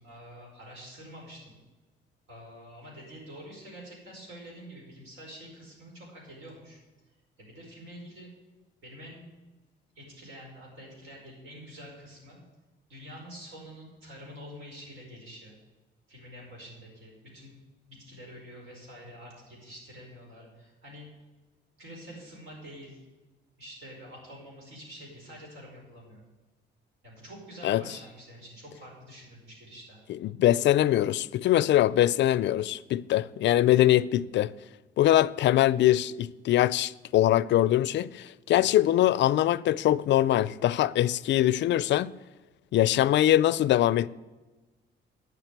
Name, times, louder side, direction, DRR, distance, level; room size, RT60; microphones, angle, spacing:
voice 1, 0.0-1.6 2.3-6.8 7.4-8.3 8.8-9.3 9.9-12.4 12.9-15.5 16.1-17.5 17.9-21.1 21.8-23.0 23.6-26.2 27.0-30.0, equal, 80° right, 4.9 m, -47 dB
voice 2, 30.2-34.5 35.0-42.1 42.7-44.1, left 13 dB, 65° left, 0.4 m, -23 dB
9.3 x 7.4 x 8.0 m
cardioid pair, 90°, 20 cm